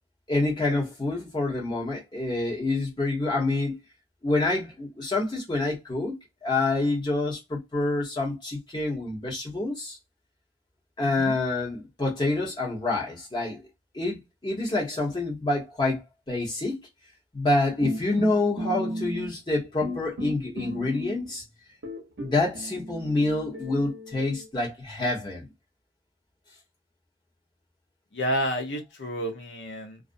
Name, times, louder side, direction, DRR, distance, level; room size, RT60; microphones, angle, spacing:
voice 1, 0.3-3.8 4.2-10.0 11.0-13.6 13.9-16.0 16.3-16.8 17.3-21.4 22.2-25.5, left 2 dB, 25° left, 0.9 m, -27 dB
voice 2, 11.0-11.4 28.1-30.0, equal, 80° left, 0.8 m, -30 dB
sound 1, 17.8-19.5 19.8-21.4 21.8-24.5, equal, 80° right, 0.7 m, -35 dB
2.5 x 2.0 x 2.5 m
head